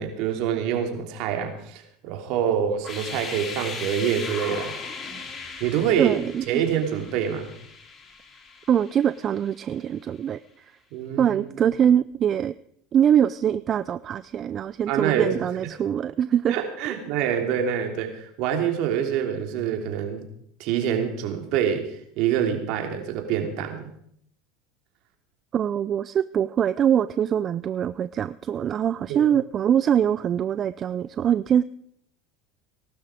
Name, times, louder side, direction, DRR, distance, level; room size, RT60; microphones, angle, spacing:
voice 1, 0.0-4.7 5.6-6.2 6.5-7.5 10.9-11.4 14.9-15.3 16.5-20.3 20.6-23.8 29.1-29.2, right 9 dB, 60° right, 4 dB, 3.1 m, -26 dB
sound 1, 2.8-9.6, left 4 dB, 35° left, 2.8 m, -38 dB
voice 2, 6.0-6.6 8.7-10.7 11.2-12.5 12.9-16.5 16.8-17.0 25.5-31.6, right 9 dB, 40° right, 15 dB, 0.5 m, -23 dB
18.5 x 12.0 x 5.1 m, 0.69 s
hypercardioid pair, 90°, 0 cm